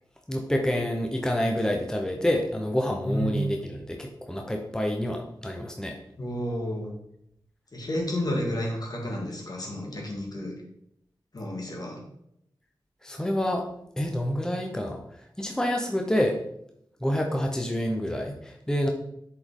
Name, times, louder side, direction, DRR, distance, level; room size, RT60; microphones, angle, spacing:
voice 1, 0.3-6.0 13.0-13.6 14.0-15.0 15.4-16.4 17.0-18.9, left 1 dB, 10° left, 2 dB, 0.9 m, -27 dB
voice 2, 3.1-3.4 6.2-6.9 7.7-10.5 11.3-12.0, equal, 55° left, 0 dB, 2.0 m, -31 dB
7.5 x 5.1 x 3.8 m, 0.76 s
wide cardioid pair, 60°, 8 cm